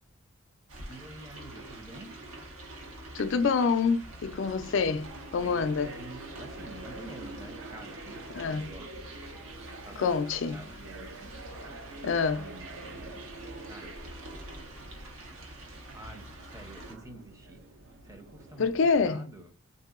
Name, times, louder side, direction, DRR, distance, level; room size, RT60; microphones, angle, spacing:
sound 1, 0.7-16.9, right 1 dB, 85° right, 1.0 m, -46 dB
voice 1, 0.9-2.2 5.3-9.1 9.8-11.3 12.4-13.1 13.6-14.0 15.9-17.6 18.0-18.7 19.0-19.5, right 2 dB, 15° right, 0.5 m, -48 dB
voice 2, 3.1-5.9 8.3-8.7 10.0-10.6 12.0-12.4 18.6-19.3, left 5 dB, 60° left, 0.3 m, -27 dB
sound 2, 4.0-19.1, right 2 dB, 70° right, 0.6 m, -47 dB
3.6 x 2.7 x 2.4 m
head